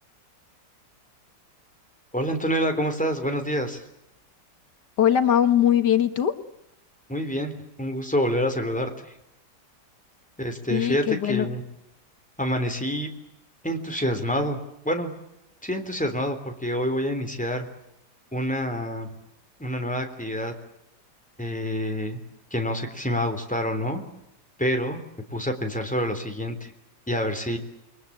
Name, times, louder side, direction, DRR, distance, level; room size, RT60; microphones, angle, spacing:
voice 1, 2.1-3.8 7.1-9.1 10.4-11.6 12.4-13.1 13.6-14.6 14.8-15.1 15.6-17.7 18.3-19.1 19.6-20.5 21.4-22.2 22.5-24.0 24.6-25.0 25.3-26.7 27.1-27.6, equal, 5° left, 4 dB, 3.6 m, -27 dB
voice 2, 5.0-6.3 10.7-11.5, left 10 dB, 75° left, 8 dB, 2.1 m, -21 dB
29.0 x 22.0 x 8.8 m, 0.86 s
omnidirectional pair, 1.9 m